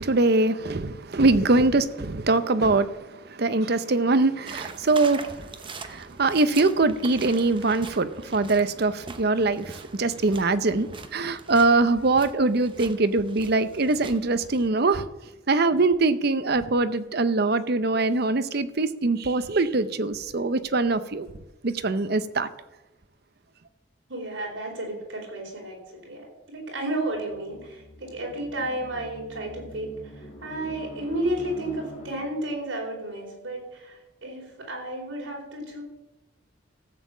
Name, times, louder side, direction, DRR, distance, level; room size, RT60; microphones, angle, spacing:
voice 1, 0.0-15.1 15.5-21.3 21.6-22.5, right 3 dB, 55° right, 0.7 m, -23 dB
sound 1, 4.5-14.7, right 3 dB, 25° right, 0.9 m, -43 dB
voice 2, 24.1-35.8, right 1 dB, 80° right, 4.7 m, -32 dB
sound 2, 27.1-32.7, left 1 dB, 35° left, 2.5 m, -44 dB
14.5 x 7.4 x 7.3 m
head